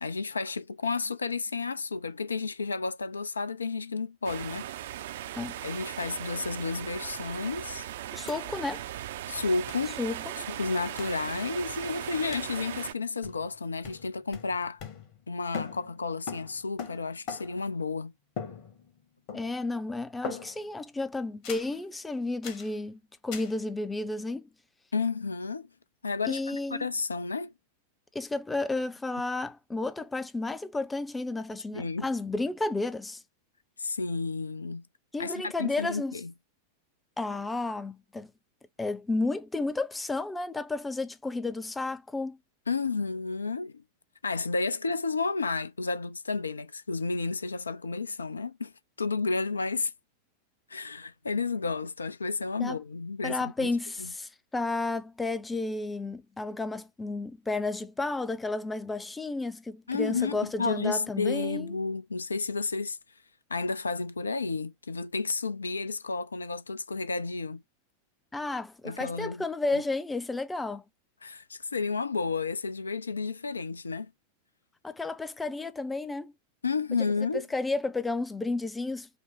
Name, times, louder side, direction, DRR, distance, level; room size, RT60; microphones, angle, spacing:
voice 1, 0.0-4.7 5.6-7.9 9.3-10.0 10.5-14.8 15.3-18.1 24.9-25.7 26.0-27.5 31.7-32.1 33.8-34.8 35.2-36.3 42.7-43.7 44.2-48.7 49.0-49.9 50.7-53.7 54.0-54.1 59.9-63.0 63.5-67.6 68.8-69.4 69.7-69.8 71.2-74.1 76.6-77.4, left 4 dB, 75° left, 0.4 m, -31 dB
sound 1, 4.2-12.9, right 12 dB, 55° right, 0.4 m, -38 dB
voice 2, 8.1-8.8 10.0-10.2 19.3-24.5 26.3-26.9 28.1-33.2 35.1-36.1 37.2-38.3 38.8-42.4 52.6-52.8 53.2-61.8 68.3-70.8 74.8-76.3 77.3-79.1, left 2 dB, 10° left, 0.5 m, -32 dB
sound 2, 8.3-8.4 8.6-8.7 9.7-9.9 11.0-11.2 12.3-12.6 13.2-13.6 13.8-15.3 15.5-17.7 18.4-19.0 19.3-19.7 20.2-20.8 21.4-21.8 22.4-22.7 23.3-23.6, left 6 dB, 45° left, 1.3 m, -41 dB
5.1 x 2.0 x 4.6 m
figure-of-eight pair, 90°, 0 cm